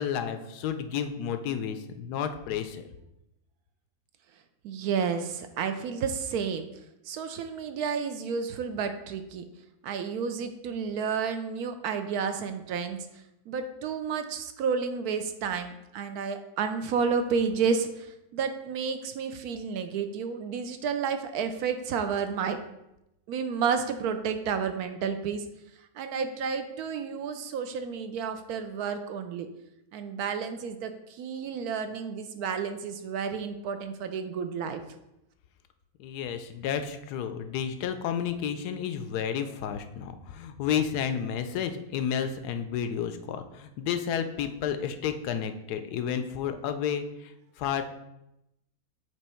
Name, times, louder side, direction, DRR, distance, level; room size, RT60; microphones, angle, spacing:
voice 1, 0.0-2.9 36.0-47.8, left 8 dB, 85° left, 8 dB, 1.2 m, -31 dB
voice 2, 4.6-6.7 7.1-9.4 9.8-13.0 13.5-22.6 23.3-25.4 26.0-29.5 29.9-34.8, right 6 dB, 75° right, 8 dB, 1.1 m, -31 dB
7.9 x 3.0 x 4.3 m, 0.87 s
omnidirectional pair, 1.6 m